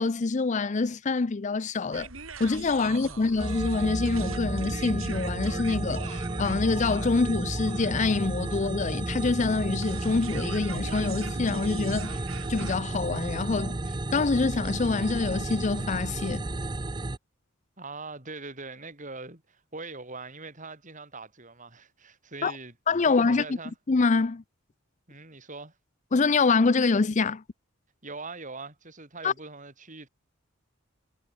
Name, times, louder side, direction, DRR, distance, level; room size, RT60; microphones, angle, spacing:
voice 1, 0.0-2.1 2.4-12.2 12.5-13.8 14.1-16.5 22.4-22.5 22.9-23.4 23.9-24.4 26.1-27.4 29.2-29.3, left 4 dB, 35° left, 0.5 m, -26 dB
sound 1, 1.9-12.8, right 4 dB, 70° right, 6.2 m, -43 dB
voice 2, 2.9-3.2 17.8-22.7 23.0-23.7 25.1-25.7 28.0-30.1, right 3 dB, 35° right, 5.0 m, -42 dB
sound 2, 3.4-17.2, right 2 dB, 20° right, 0.6 m, -32 dB
head